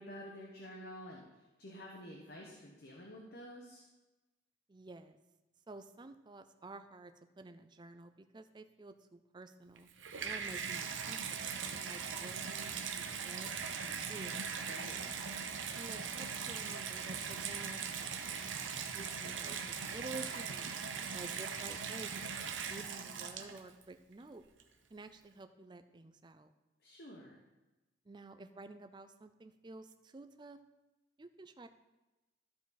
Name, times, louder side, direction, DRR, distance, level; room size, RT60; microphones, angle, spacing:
voice 1, 0.0-3.8 14.7-15.0 26.8-27.4, equal, 50° left, -1 dB, 1.0 m, -50 dB
voice 2, 4.7-5.2 5.7-9.9 10.2-13.5 13.8-14.5 15.8-18.4 18.9-20.8 21.1-22.4 22.7-24.4 24.9-26.5 28.1-30.6 31.2-31.7, right 2 dB, 25° right, 9 dB, 0.4 m, -51 dB
Water tap faucet / Bathtub (filling or washing), 9.8-23.8 24.6-24.7, right 6 dB, 75° right, 0.8 m, -40 dB
13.0 x 4.8 x 4.1 m, 1.1 s
head